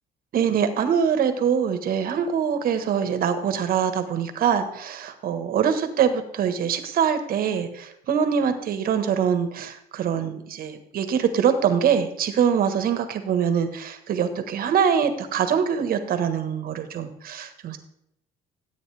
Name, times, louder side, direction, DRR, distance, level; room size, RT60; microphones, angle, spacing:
voice 1, 0.3-17.8, right 7 dB, 60° right, 9 dB, 1.4 m, -24 dB
14.0 x 8.6 x 3.4 m, 0.74 s
cardioid pair, 110°, 17 cm